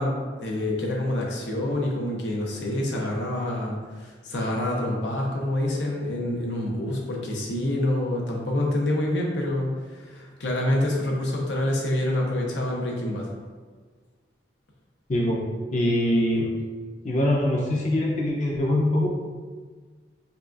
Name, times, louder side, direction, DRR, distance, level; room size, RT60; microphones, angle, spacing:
voice 1, 0.0-13.3, left 1 dB, 90° left, -1 dB, 0.8 m, -27 dB
voice 2, 15.1-15.4 15.7-16.5 17.0-19.1, left 1 dB, 45° left, -3 dB, 0.6 m, -23 dB
5.4 x 2.4 x 2.5 m, 1.5 s
head